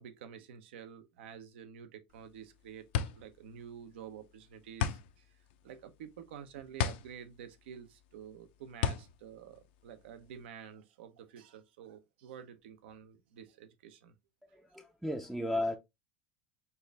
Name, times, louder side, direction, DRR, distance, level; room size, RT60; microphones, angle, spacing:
voice 1, 0.0-2.9 3.1-5.3 5.6-14.2, right 8 dB, 85° right, 0.8 m, -49 dB
sound 1, 2.1-10.5, left 9 dB, 70° left, 0.5 m, -36 dB
voice 2, 14.5-15.8, left 1 dB, ahead, 0.4 m, -34 dB
4.6 x 2.6 x 3.2 m
supercardioid pair, 140°, 6 cm